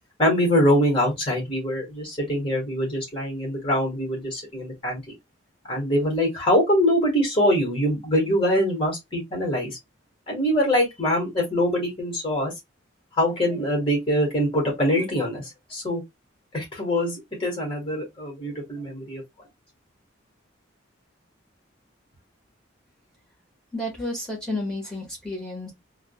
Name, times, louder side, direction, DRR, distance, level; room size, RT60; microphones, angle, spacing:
voice 1, 0.2-5.0 5.7-9.8 10.3-12.5 13.2-16.0 16.5-19.2, equal, 25° left, 1.5 m, -23 dB
voice 2, 23.7-25.7, left 1 dB, 5° left, 1.4 m, -31 dB
3.6 x 2.3 x 2.3 m
head